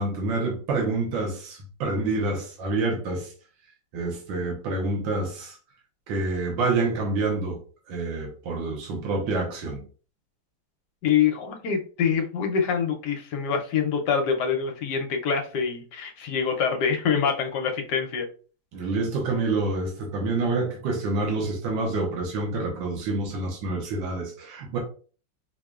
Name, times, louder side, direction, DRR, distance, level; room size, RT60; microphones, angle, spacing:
voice 1, 0.0-3.3 3.9-5.5 6.1-7.6 7.9-9.8 18.7-24.8, right 3 dB, 80° right, -1 dB, 1.7 m, -27 dB
voice 2, 11.0-18.3, left 6 dB, 70° left, 4 dB, 1.1 m, -25 dB
4.8 x 2.7 x 2.3 m, 0.39 s
omnidirectional pair, 2.1 m